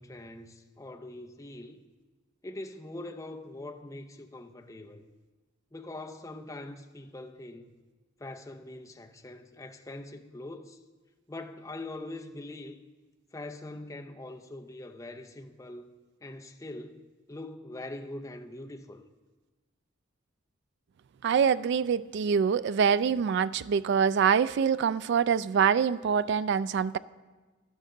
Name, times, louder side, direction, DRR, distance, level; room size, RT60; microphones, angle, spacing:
voice 1, 0.0-1.8 2.4-5.0 5.7-7.7 8.2-10.8 11.3-12.8 13.3-15.9 16.2-19.0, left 2 dB, 15° left, 0.6 m, -43 dB
voice 2, 21.2-27.0, right 7 dB, 60° right, 0.3 m, -25 dB
12.5 x 12.0 x 3.8 m
head